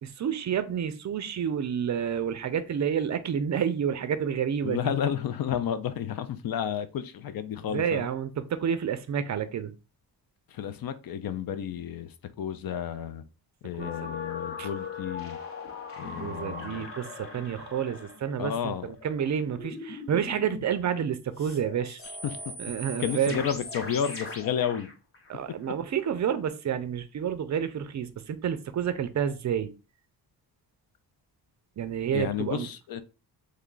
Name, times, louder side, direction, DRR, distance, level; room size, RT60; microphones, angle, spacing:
voice 1, 0.0-4.9 7.6-9.7 13.8-13.9 14.6-14.7 16.2-22.0 22.6-23.4 25.3-29.7 31.8-32.7, right 8 dB, 45° right, 0.4 m, -29 dB
voice 2, 4.6-8.1 10.5-13.2 13.6-15.4 16.0-16.9 18.4-18.9 22.2-22.4 23.0-24.9 32.1-33.0, left 9 dB, 60° left, 0.5 m, -31 dB
sound 1, 13.8-20.7 21.4-25.9 26.3-26.4, left 3 dB, 35° left, 0.9 m, -39 dB
3.2 x 2.3 x 3.8 m
cardioid pair, 95°, 40 cm